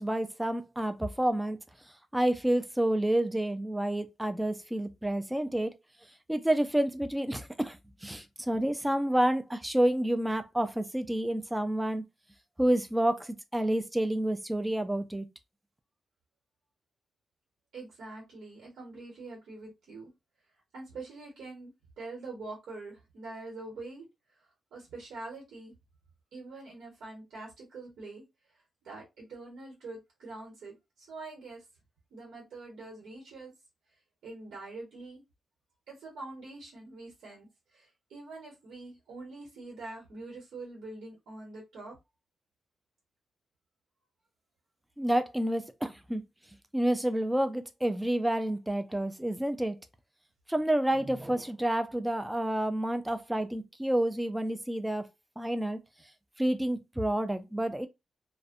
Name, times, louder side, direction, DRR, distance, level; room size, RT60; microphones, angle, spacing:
voice 1, 0.0-1.6 2.1-5.7 6.3-12.0 12.6-15.3 45.0-46.2 46.7-49.8 50.5-55.1 55.4-55.8 56.4-57.9, right 1 dB, 10° right, 0.4 m, -29 dB
voice 2, 17.7-20.1 20.7-24.0 24.4-25.7 26.3-28.2 28.8-31.6 32.1-33.5 34.2-35.2 35.9-37.5 37.7-42.0, right 3 dB, 85° right, 1.0 m, -44 dB
2.5 x 2.1 x 2.4 m
cardioid pair, 90°, 0 cm